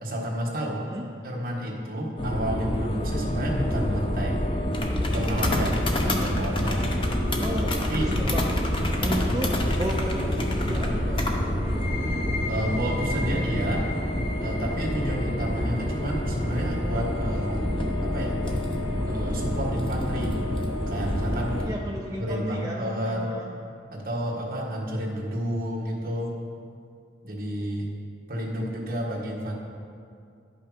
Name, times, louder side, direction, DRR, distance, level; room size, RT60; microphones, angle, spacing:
voice 1, 0.0-0.9 1.2-4.5 5.1-6.9 7.9-8.1 12.5-13.8 14.4-17.6 18.0-18.4 19.0-20.4 20.9-21.6 22.2-23.3 23.9-26.3 27.2-27.9 28.3-29.5, equal, 50° right, -3 dB, 1.6 m, -30 dB
sound 1, 2.2-21.7, left 1 dB, 30° left, 0.7 m, -27 dB
voice 2, 7.4-8.4 9.0-11.3 21.6-23.5, right 1 dB, 20° right, -3 dB, 0.5 m, -34 dB
sound 2, 11.6-19.1, left 2 dB, 65° right, 1.9 m, -39 dB
11.0 x 5.7 x 5.1 m, 2.4 s
head